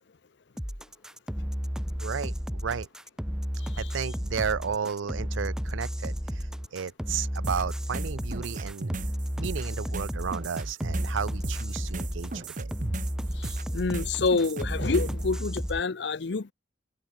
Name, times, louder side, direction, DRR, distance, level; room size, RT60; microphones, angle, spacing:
sound 1, 0.6-15.8, equal, 5° right, 0.9 m, -33 dB
voice 1, 2.0-2.9 3.8-8.9 9.4-12.7, right 6 dB, 80° right, 0.5 m, -33 dB
sound 2, 7.4-15.3, right 2 dB, 40° right, 0.9 m, -36 dB
voice 2, 13.4-16.5, left 4 dB, 60° left, 0.6 m, -28 dB
head